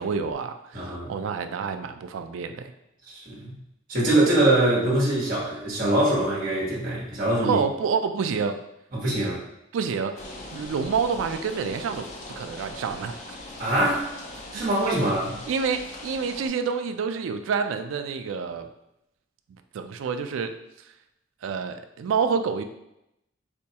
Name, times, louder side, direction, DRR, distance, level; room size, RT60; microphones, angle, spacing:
voice 1, 0.0-2.7 7.4-8.6 9.7-12.1 12.4-13.4 14.5-14.8 15.5-18.7 19.7-20.5 21.4-22.6, right 5 dB, 80° right, 8 dB, 0.3 m, -28 dB
voice 2, 0.7-1.1 3.0-3.5 3.9-7.6 8.9-9.4 13.6-14.1 14.5-15.4, right 1 dB, 45° right, -5 dB, 1.0 m, -23 dB
sound 1, 10.2-16.5, left 1 dB, 35° left, 0.5 m, -40 dB
4.2 x 2.2 x 2.8 m, 0.84 s
head